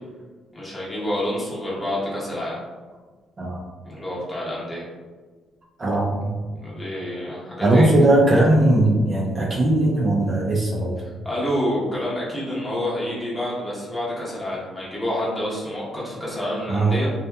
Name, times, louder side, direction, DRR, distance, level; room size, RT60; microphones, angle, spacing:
voice 1, 0.5-2.6 3.8-4.9 6.5-7.9 11.0-17.1, left 1 dB, 15° left, -7 dB, 0.9 m, -28 dB
voice 2, 5.8-6.4 7.6-10.9 16.7-16.9, right 1 dB, 30° right, -4 dB, 0.4 m, -19 dB
2.7 x 2.3 x 2.2 m, 1.4 s
cardioid pair, 115°, 0 cm